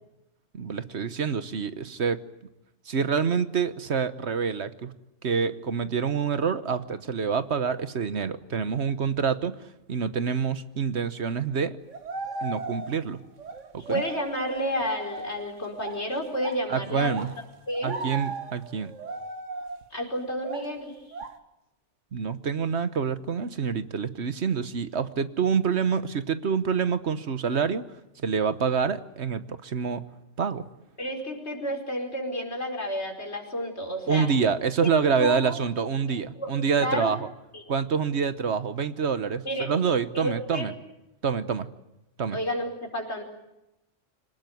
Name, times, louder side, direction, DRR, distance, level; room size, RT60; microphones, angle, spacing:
voice 1, 0.5-2.2 2.9-4.9 5.2-11.8 12.4-13.2 13.7-14.0 16.7-17.3 17.8-18.9 22.1-27.8 28.2-30.0 30.4-30.6 34.1-37.3 37.7-40.7 41.2-41.7 42.2-42.4, right 6 dB, 65° right, 12 dB, 1.4 m, -27 dB
sound 1, 11.9-13.1 13.4-16.7 17.1-20.0 20.4-20.8 21.1-21.4, right 3 dB, 90° right, 1.8 m, -37 dB
voice 2, 13.9-17.1 17.7-18.0 19.9-20.9 31.0-34.3 34.8-34.9 35.2-35.6 36.3-36.5 36.8-37.1 37.5-37.6 39.4-39.7 40.1-40.7 42.3-43.2, equal, 65° left, 2 dB, 5.2 m, -30 dB
26.0 x 18.5 x 9.4 m, 0.92 s
omnidirectional pair, 1.2 m